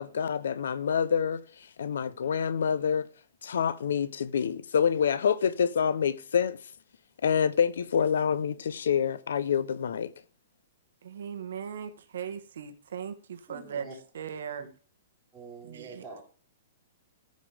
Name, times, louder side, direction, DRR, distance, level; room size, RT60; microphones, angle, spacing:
voice 1, 0.0-3.1 3.4-6.6 7.2-10.1, left 7 dB, 80° left, 0.7 m, -27 dB
voice 2, 11.0-13.9 14.1-14.6 15.6-16.0, right 7 dB, 70° right, 1.3 m, -38 dB
voice 3, 13.5-13.9 14.6-14.7 15.3-16.2, right 4 dB, 5° right, 4.4 m, -45 dB
14.5 x 5.3 x 3.5 m
hypercardioid pair, 175°, 0 cm